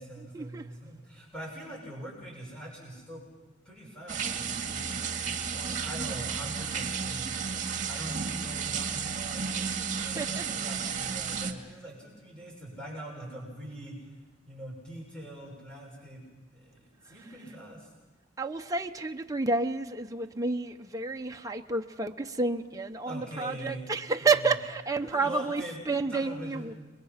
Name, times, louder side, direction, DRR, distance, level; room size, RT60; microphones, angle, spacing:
voice 1, 0.0-3.2 3.7-14.1 14.5-16.2 16.5-17.9 23.1-23.9 24.2-24.6 25.0-26.8, right 1 dB, 5° left, -3 dB, 6.9 m, -43 dB
sound 1, 4.1-11.5, right 6 dB, 45° right, 2.0 m, -33 dB
voice 2, 18.4-26.7, right 3 dB, 20° right, 4 dB, 0.9 m, -30 dB
30.0 x 22.5 x 5.9 m, 1.2 s
head